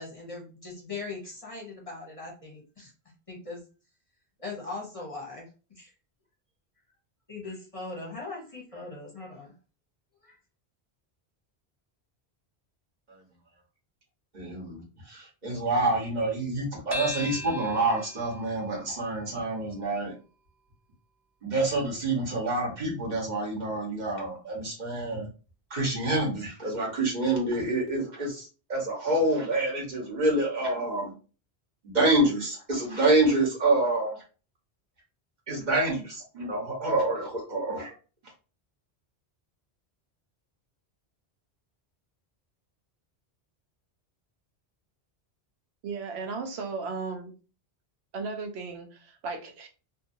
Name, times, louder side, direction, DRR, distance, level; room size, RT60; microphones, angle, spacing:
voice 1, 0.0-2.9 3.3-3.6 4.4-5.5 5.7-5.9 7.3-9.5 10.2-10.4, left 3 dB, 35° left, 0.8 m, -40 dB
voice 2, 14.3-14.8 15.1-20.1 21.4-25.3 25.7-31.1 31.8-34.2 35.5-37.9, right 2 dB, 45° right, 1.2 m, -27 dB
sound 1, 16.9-21.7, left 2 dB, 5° right, 0.3 m, -42 dB
voice 3, 45.8-47.3 48.1-49.7, right 4 dB, 75° right, 0.9 m, -35 dB
2.6 x 2.6 x 2.6 m
omnidirectional pair, 1.1 m